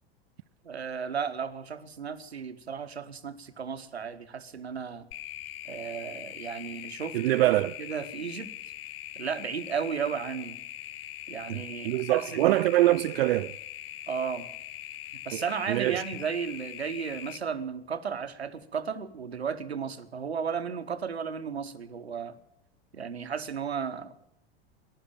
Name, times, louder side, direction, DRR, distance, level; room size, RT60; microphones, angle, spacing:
voice 1, 0.6-5.1 5.7-7.3 7.8-8.5 9.1-10.6 11.3-12.6 14.1-14.5 15.2-22.4 22.9-24.3, right 6 dB, 90° right, 1.0 m, -34 dB
sound 1, 5.1-17.4, left 13 dB, 65° left, 0.7 m, -42 dB
voice 2, 7.1-7.7 11.5-13.5 15.3-15.4 15.7-16.0, right 16 dB, 65° right, 0.5 m, -24 dB
14.5 x 11.0 x 8.7 m
hypercardioid pair, 85°, 31 cm